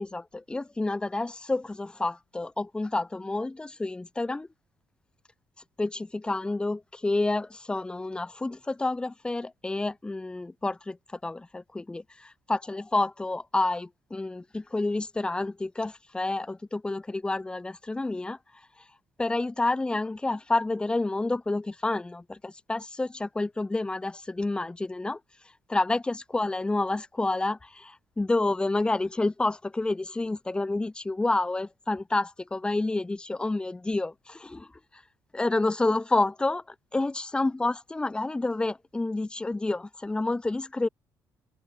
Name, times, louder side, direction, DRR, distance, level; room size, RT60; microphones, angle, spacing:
voice 1, 0.0-4.5 5.8-11.0 11.2-18.4 19.2-25.2 25.7-34.7 35.3-40.9, left 2 dB, 15° left, 3.3 m, -29 dB
open air
cardioid pair, 125°, 7 cm